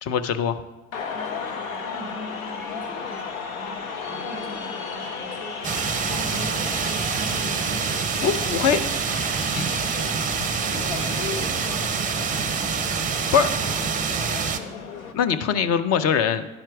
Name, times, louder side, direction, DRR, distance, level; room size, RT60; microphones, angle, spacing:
voice 1, 0.0-0.6 8.2-8.8 9.5-9.6 13.3-13.5 15.1-16.5, left 7 dB, 35° left, 10 dB, 0.7 m, -22 dB
sound 1, 0.9-15.1, left 5 dB, 75° left, 1.1 m, -34 dB
voice 2, 1.1-9.0 9.4-14.7, equal, 15° left, -4 dB, 3.1 m, -41 dB
sound 2, 5.6-14.6, right 6 dB, 20° right, 0.6 m, -26 dB
10.5 x 4.4 x 5.9 m, 1.1 s
hypercardioid pair, 85°, 42 cm